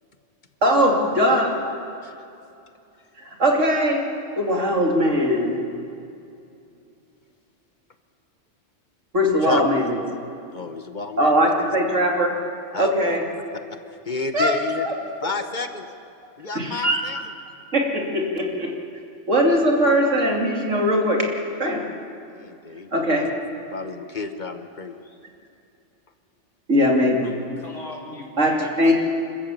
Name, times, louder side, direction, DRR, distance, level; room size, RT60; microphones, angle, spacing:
voice 1, 0.6-1.6 3.4-4.0 4.4-5.6 9.1-10.0 11.2-12.3 12.7-13.2 14.3-14.9 16.5-17.0 17.7-18.7 19.3-21.3 21.6-21.8 22.9-23.3 26.7-27.3 28.4-28.9, equal, 75° right, 0 dB, 3.0 m, -20 dB
voice 2, 10.5-11.7 12.7-13.2 13.5-13.6 14.1-14.8 15.2-15.9 16.4-17.2 22.3-23.2 23.7-25.0, left 3 dB, 40° left, 7 dB, 1.1 m, -31 dB
voice 3, 27.2-28.9, left 1 dB, 75° left, -2 dB, 3.6 m, -39 dB
27.5 x 14.0 x 7.5 m, 2.6 s
omnidirectional pair, 1.3 m